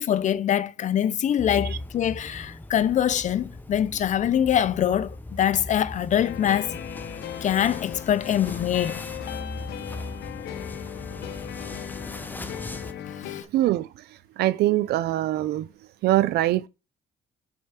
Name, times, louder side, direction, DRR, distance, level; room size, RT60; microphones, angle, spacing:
voice 1, 0.0-6.7 7.4-9.0 13.1-13.4, left 10 dB, 45° left, 0.6 m, -24 dB
sound 1, 1.4-12.9, left 2 dB, 10° left, 0.8 m, -39 dB
sound 2, 6.1-13.4, left 10 dB, 80° left, 0.9 m, -37 dB
voice 2, 13.5-13.9 14.4-15.7 16.0-16.7, right 15 dB, 75° right, 0.6 m, -22 dB
6.3 x 4.5 x 5.8 m
cardioid pair, 110°, 17 cm